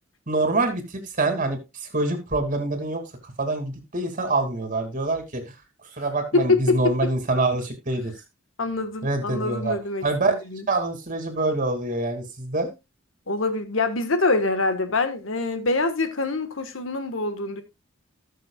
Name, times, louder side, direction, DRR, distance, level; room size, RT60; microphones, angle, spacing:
voice 1, 0.3-5.5 5.9-8.1 9.0-9.8 10.0-10.4 10.7-12.7, right 2 dB, 40° right, 2.6 m, -25 dB
voice 2, 6.5-6.9 8.6-10.0 10.5-10.6 13.3-17.6, left 3 dB, 80° left, 1.5 m, -25 dB
18.5 x 6.5 x 2.4 m
head